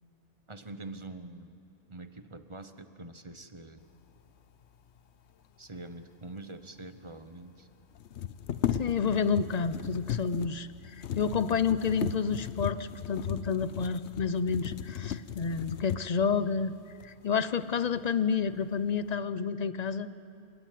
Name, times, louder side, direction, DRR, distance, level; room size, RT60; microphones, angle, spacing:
voice 1, 0.5-1.6 1.9-3.8 5.6-7.7, right 2 dB, 25° right, 9 dB, 1.0 m, -45 dB
sound 1, 6.5-6.6 6.8-6.9 7.9-16.3 17.0-17.1 17.6-18.2 18.5-19.1, left 9 dB, 60° left, 0.9 m, -36 dB
voice 2, 8.8-16.7 17.0-20.1, left 6 dB, 40° left, 14 dB, 0.6 m, -29 dB
28.5 x 13.5 x 9.3 m, 2.8 s
omnidirectional pair, 1.4 m